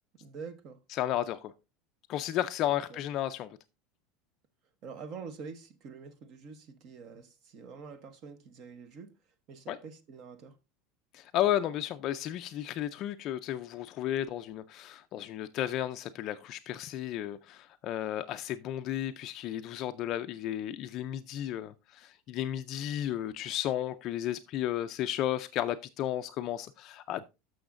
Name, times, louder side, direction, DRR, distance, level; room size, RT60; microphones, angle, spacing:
voice 1, 0.2-0.8 2.7-3.0 4.8-9.1 9.5-10.6, right 5 dB, 35° right, 0.9 m, -46 dB
voice 2, 0.9-1.5 2.1-3.6 9.7-9.8 11.1-27.2, left 12 dB, 35° left, 0.4 m, -33 dB
13.0 x 6.3 x 2.5 m
cardioid pair, 175°, 0 cm